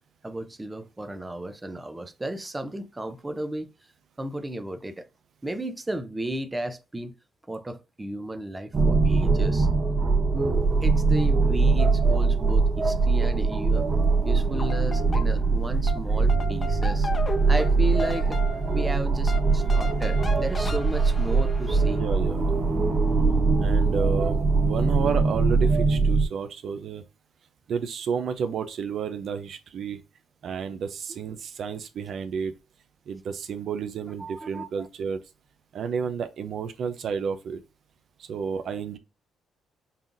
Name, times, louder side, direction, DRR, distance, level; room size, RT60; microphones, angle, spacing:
voice 1, 0.2-3.7 4.2-5.1 5.4-7.1 7.5-9.7 10.3-13.9 14.2-17.1 17.5-18.4 18.7-22.0 34.2-34.9, right 1 dB, 15° right, 0.6 m, -34 dB
sound 1, 8.7-26.3, right 4 dB, 40° right, 0.8 m, -22 dB
sound 2, 14.4-15.6 15.9-22.0, left 3 dB, 35° left, 0.9 m, -37 dB
voice 2, 21.9-22.7 23.6-27.0 27.7-30.0 30.4-32.5 33.1-35.2 35.7-37.6 38.2-39.0, right 6 dB, 65° right, 0.5 m, -31 dB
5.5 x 2.4 x 2.5 m
cardioid pair, 90°, 0 cm